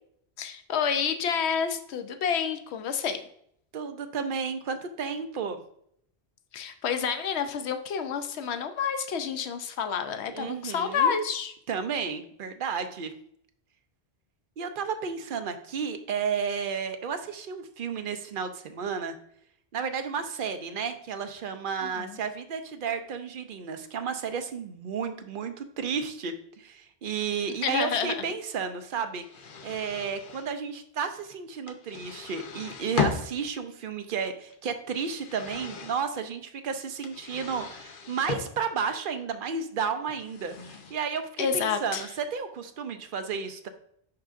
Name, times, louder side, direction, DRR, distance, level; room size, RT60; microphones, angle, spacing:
voice 1, 0.4-3.2 6.5-11.5 21.8-22.2 27.6-28.2 41.4-42.1, left 7 dB, 85° left, 8 dB, 0.9 m, -29 dB
voice 2, 3.7-5.6 10.3-11.2 11.7-13.1 14.6-19.2 19.7-29.2 29.6-43.7, right 6 dB, 60° right, 8 dB, 0.7 m, -32 dB
sound 1, 29.2-30.5 31.7-33.5 34.5-36.0 37.0-38.5 40.1-40.9, left 5 dB, 60° left, 0.8 m, -35 dB
10.5 x 3.7 x 2.5 m, 0.69 s
omnidirectional pair, 1.1 m